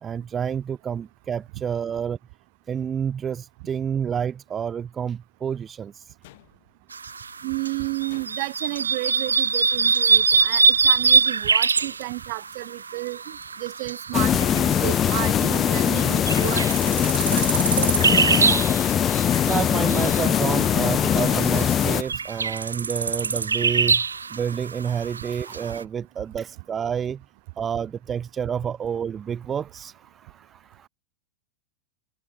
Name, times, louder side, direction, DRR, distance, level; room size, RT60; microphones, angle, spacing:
voice 1, 0.0-2.2 2.7-5.9 19.4-24.0 24.3-27.2 27.6-30.9, right 8 dB, 20° right, 1.1 m, -29 dB
sound 1, 6.2-7.0 8.1-8.7 10.3-10.9 11.8-12.3, left 19 dB, 50° left, 4.7 m, -52 dB
sound 2, 6.9-25.8, right 5 dB, 75° right, 0.5 m, -24 dB
voice 2, 7.4-17.9, right 30 dB, 45° right, 1.9 m, -32 dB
sound 3, 14.1-22.0, left 9 dB, 25° left, 1.3 m, -21 dB
figure-of-eight pair, 90°, 0 cm